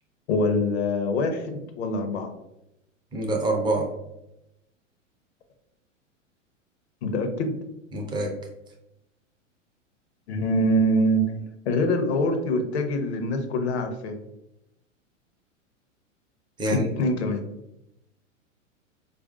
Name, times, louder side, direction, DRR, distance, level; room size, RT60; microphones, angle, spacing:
voice 1, 0.3-2.3 7.0-7.6 10.3-11.3 11.7-14.2 16.6-17.5, left 1 dB, 55° left, 7 dB, 0.7 m, -24 dB
voice 2, 3.1-3.9 7.9-8.3 16.6-16.9, right 1 dB, 10° right, 0 dB, 0.4 m, -25 dB
4.6 x 2.5 x 2.4 m, 0.86 s
figure-of-eight pair, 100°, 38 cm